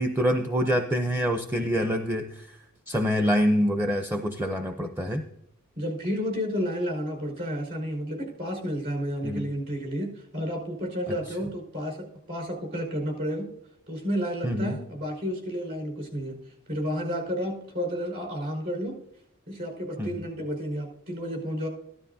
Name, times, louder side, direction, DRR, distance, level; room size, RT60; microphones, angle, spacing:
voice 1, 0.0-2.6 2.9-5.2 9.2-9.5 11.1-11.2 14.4-14.8 20.0-20.3, equal, 10° right, 5 dB, 0.6 m, -26 dB
voice 2, 5.8-13.5 13.9-16.4 16.7-18.9 19.5-21.7, equal, 45° right, 2 dB, 4.7 m, -31 dB
14.5 x 12.5 x 2.7 m, 0.77 s
head